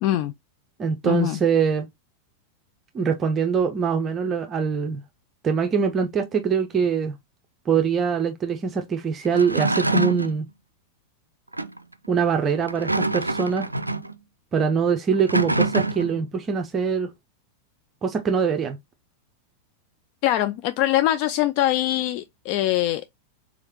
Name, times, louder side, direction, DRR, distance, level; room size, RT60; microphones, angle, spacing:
voice 1, 0.0-0.3 1.0-1.4 20.2-23.1, left 14 dB, 45° left, 0.3 m, -23 dB
voice 2, 0.8-1.9 2.9-5.0 5.4-7.2 7.7-10.4 12.1-13.7 14.5-17.1 18.0-18.8, right 6 dB, 25° right, 0.6 m, -23 dB
sound 1, 9.2-10.4 11.5-11.8 12.6-14.1 15.1-16.2, right 2 dB, 85° right, 0.3 m, -25 dB
4.7 x 4.0 x 2.9 m
figure-of-eight pair, 90°, 0 cm